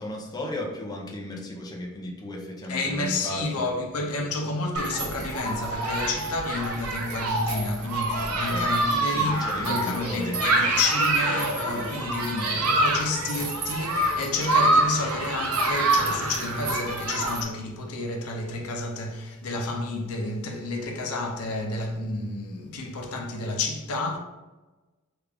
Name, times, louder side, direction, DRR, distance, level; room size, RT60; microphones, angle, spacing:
voice 1, 0.0-3.7 8.3-8.8 9.1-10.4, left 1 dB, 20° left, 0.5 m, -35 dB
voice 2, 2.7-24.2, left 3 dB, 85° left, 0.6 m, -30 dB
Human group actions, 4.7-17.4, right 2 dB, 85° right, 0.7 m, -26 dB
3.4 x 2.4 x 3.3 m
head